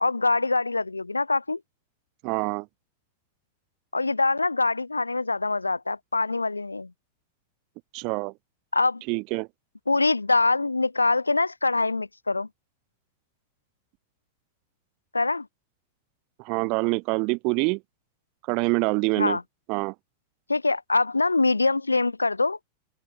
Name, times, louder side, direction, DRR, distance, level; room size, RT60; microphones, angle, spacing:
voice 1, 0.0-1.6 3.9-6.9 8.7-9.0 9.9-12.5 15.1-15.5 19.2-19.4 20.5-22.6, left 3 dB, 80° left, 0.5 m, -24 dB
voice 2, 2.2-2.7 7.9-8.3 9.1-9.5 16.4-17.8 18.5-19.4 19.7-19.9, right 29 dB, 45° right, 1.6 m, -25 dB
open air
figure-of-eight pair, 90°, 0 cm